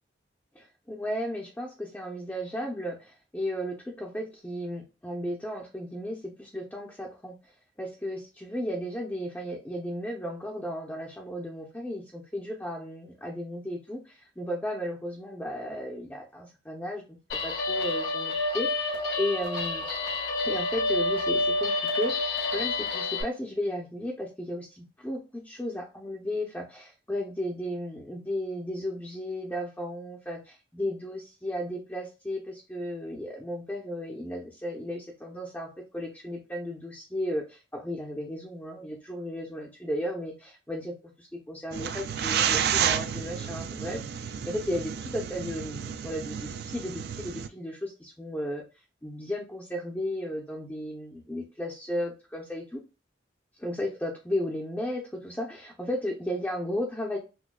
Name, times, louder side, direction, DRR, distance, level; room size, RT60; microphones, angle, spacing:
voice 1, 0.5-7.5 7.8-17.0 17.4-19.8 20.4-48.6 49.0-52.8 53.6-57.2, left 1 dB, 10° left, -2 dB, 0.5 m, -34 dB
Guitar, 17.3-23.2, left 2 dB, 75° left, 1.5 m, -28 dB
sound 1, 41.7-47.5, right 8 dB, 55° right, 0.3 m, -31 dB
6.0 x 2.2 x 2.2 m, 0.30 s
head